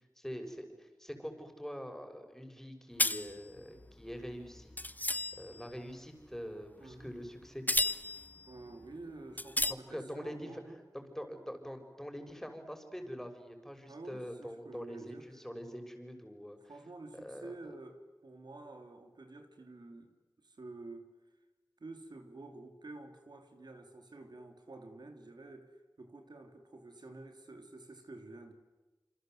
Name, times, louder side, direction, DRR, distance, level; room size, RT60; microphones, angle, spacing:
voice 1, 0.2-4.7 5.4-7.6 9.7-10.6 10.9-16.6 17.2-17.5, equal, 5° left, 5 dB, 6.4 m, -44 dB
sound 1, 3.0-5.6 7.0-7.3 7.7-8.4 8.8-8.9 9.4-9.7, left 2 dB, 25° left, 1.0 m, -33 dB
voice 2, 6.8-7.1 8.5-10.8 13.9-15.3 16.6-21.1 21.8-28.5, right 2 dB, 85° right, 5 dB, 3.4 m, -50 dB
28.0 x 26.5 x 8.0 m, 1.2 s
wide cardioid pair, 45°, 7 cm